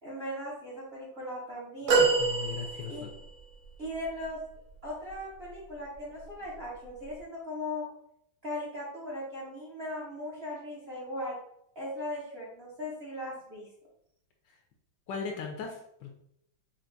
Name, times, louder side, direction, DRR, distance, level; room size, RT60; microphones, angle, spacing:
voice 1, 0.0-2.0 2.9-3.1 3.8-4.4 4.8-7.9 8.4-11.4 11.7-13.7, left 1 dB, 40° right, -6 dB, 0.9 m, -38 dB
sound 1, 1.9-3.3 4.0-4.1, right 4 dB, 85° right, 1.8 m, -26 dB
voice 2, 2.0-3.1 15.1-16.1, left 5 dB, 75° left, 2 dB, 1.1 m, -38 dB
5.7 x 2.4 x 2.6 m, 0.74 s
omnidirectional pair, 2.2 m